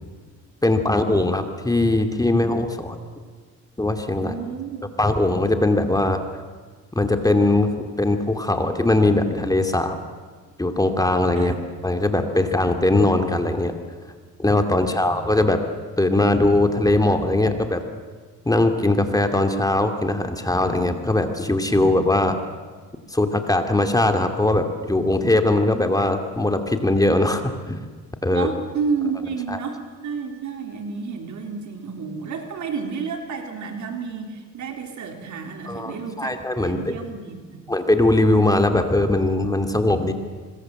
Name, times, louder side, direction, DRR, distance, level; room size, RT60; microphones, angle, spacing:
voice 1, 0.6-3.0 3.8-4.3 5.0-6.2 6.9-10.0 10.6-11.5 11.8-13.7 14.4-15.6 16.0-17.8 18.5-22.4 23.1-27.8 28.2-28.5 29.5-29.6 35.7-36.9 37.7-40.1, left 2 dB, 10° left, 5 dB, 2.4 m, -20 dB
voice 2, 4.2-4.9 11.3-11.6 14.6-15.2 28.3-37.6, right 5 dB, 70° right, 4 dB, 3.7 m, -31 dB
25.5 x 21.0 x 7.7 m, 1.5 s
cardioid pair, 90°, 30 cm